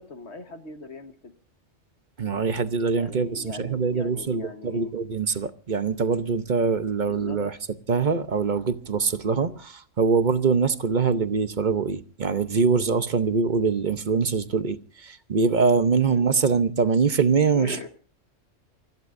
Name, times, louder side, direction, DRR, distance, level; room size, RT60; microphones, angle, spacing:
voice 1, 0.0-1.3 2.9-4.9 7.0-7.4 9.3-9.5 16.1-16.2 17.5-17.9, left 3 dB, 60° left, 1.6 m, -40 dB
voice 2, 2.2-7.6 7.9-17.8, right 5 dB, 40° right, 0.9 m, -23 dB
29.0 x 15.0 x 2.6 m
omnidirectional pair, 1.3 m